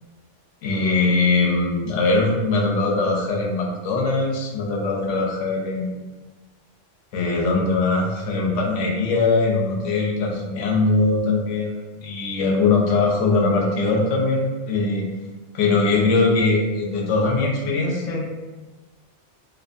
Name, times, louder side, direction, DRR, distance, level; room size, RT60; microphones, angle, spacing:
voice 1, 0.6-6.0 7.1-15.1 15.5-18.3, left 3 dB, 80° left, 0 dB, 0.9 m, -21 dB
2.6 x 2.1 x 2.5 m, 1.2 s
omnidirectional pair, 1.2 m